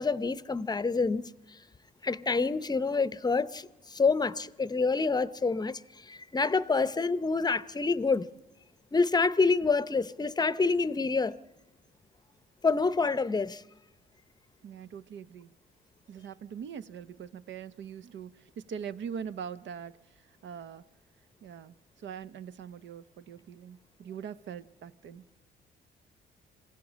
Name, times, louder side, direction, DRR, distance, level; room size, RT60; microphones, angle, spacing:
voice 1, 0.0-1.3 2.0-8.3 8.9-11.4 12.6-13.6, left 4 dB, 20° left, 0.7 m, -27 dB
voice 2, 14.6-15.5 16.1-19.9 20.4-20.8 21.4-25.2, right 7 dB, 70° right, 0.9 m, -42 dB
26.5 x 16.0 x 7.4 m
cardioid pair, 90°, 20 cm